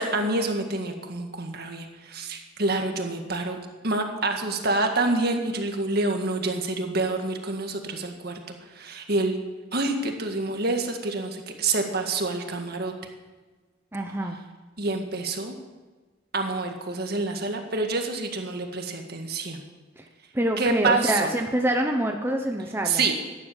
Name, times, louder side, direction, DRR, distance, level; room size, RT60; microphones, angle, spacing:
voice 1, 0.0-3.6 3.8-8.4 8.8-9.4 9.7-12.9 14.8-15.5 16.3-19.6 20.6-21.3 22.9-23.1, right 3 dB, 50° right, 4 dB, 1.9 m, -27 dB
voice 2, 13.9-14.4 20.0-20.1 20.3-23.0, right 1 dB, 10° right, 3 dB, 0.9 m, -26 dB
15.5 x 11.0 x 7.3 m, 1.3 s
head